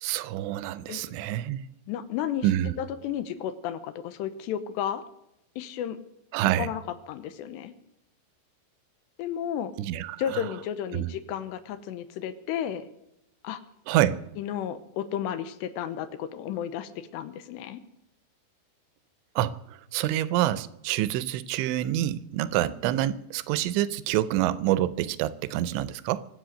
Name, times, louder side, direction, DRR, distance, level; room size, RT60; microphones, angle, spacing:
voice 1, 0.0-1.6 2.4-2.7 6.3-6.7 9.8-10.5 10.9-11.1 13.9-14.2 19.4-26.3, right 13 dB, 85° right, 2.9 m, -27 dB
voice 2, 1.9-2.5 2.8-5.1 5.6-6.0 6.4-7.7 9.2-9.7 10.2-12.9 13.4-13.6 14.4-17.8, left 9 dB, 80° left, 3.0 m, -33 dB
24.5 x 8.4 x 6.4 m
omnidirectional pair, 5.2 m